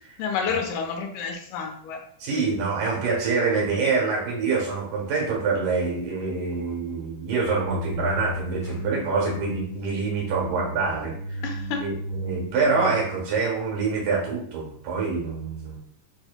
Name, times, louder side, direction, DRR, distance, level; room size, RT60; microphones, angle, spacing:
voice 1, 0.2-2.0 11.4-11.9, left 6 dB, 85° left, 2 dB, 2.3 m, -29 dB
voice 2, 2.2-11.4 11.8-15.8, right 4 dB, 80° right, -2 dB, 2.7 m, -26 dB
sound 1, 7.4-13.2, left 1 dB, 60° left, 2.3 m, -34 dB
5.9 x 2.7 x 2.2 m, 0.63 s
omnidirectional pair, 3.7 m